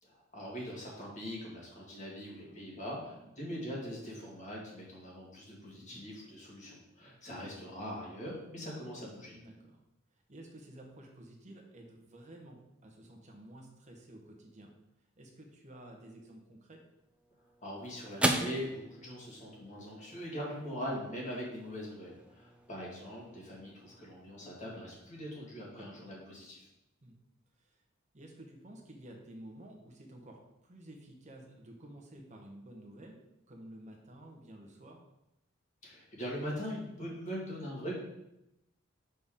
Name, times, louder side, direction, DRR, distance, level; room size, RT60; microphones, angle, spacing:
voice 1, 0.0-9.4 17.6-26.7 35.8-38.0, equal, 35° left, -4 dB, 1.9 m, -42 dB
voice 2, 2.2-2.7 3.1-3.3 5.7-6.0 7.0-7.2 9.3-9.8 10.1-14.7 15.2-16.8 25.7-26.2 27.0-27.2 27.6-27.8 28.1-33.2 33.5-35.0, right 1 dB, 35° right, 2 dB, 1.1 m, -52 dB
sound 1, 16.9-25.5, right 1 dB, 5° right, 0.4 m, -40 dB
6.5 x 4.2 x 3.7 m, 0.87 s
head